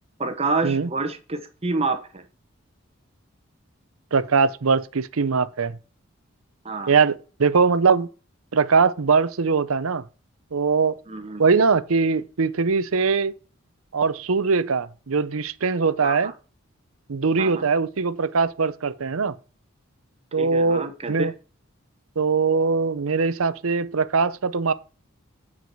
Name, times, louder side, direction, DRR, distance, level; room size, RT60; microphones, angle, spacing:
voice 1, 0.2-2.2 6.6-6.9 11.1-11.4 16.0-16.3 17.4-17.7 20.4-21.3, right 3 dB, 30° right, 1.0 m, -28 dB
voice 2, 4.1-5.8 6.9-7.1 7.4-8.1 8.5-10.0 10.5-11.0 11.4-13.3 13.9-16.3 17.1-19.3 20.3-21.3 22.2-24.7, right 5 dB, 80° right, 0.7 m, -21 dB
9.4 x 4.9 x 6.1 m
head